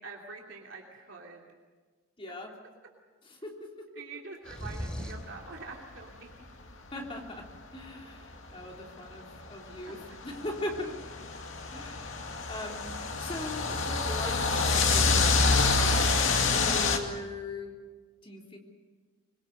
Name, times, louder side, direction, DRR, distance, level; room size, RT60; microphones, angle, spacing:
voice 1, 0.0-1.4 2.6-2.7 3.9-6.3, right 4 dB, 65° right, -1 dB, 2.9 m, -45 dB
voice 2, 2.2-2.5 3.2-3.9 6.9-11.0 11.7-17.8 18.2-18.6, left 1 dB, 25° left, 0 dB, 3.4 m, -40 dB
sound 1, 4.4-5.3, equal, 5° left, 3.6 m, -37 dB
sound 2, 6.0-6.1 6.7-6.8 7.8-7.9 9.4-17.0, left 4 dB, 65° left, 2.3 m, -27 dB
25.5 x 22.5 x 6.7 m, 1.4 s
head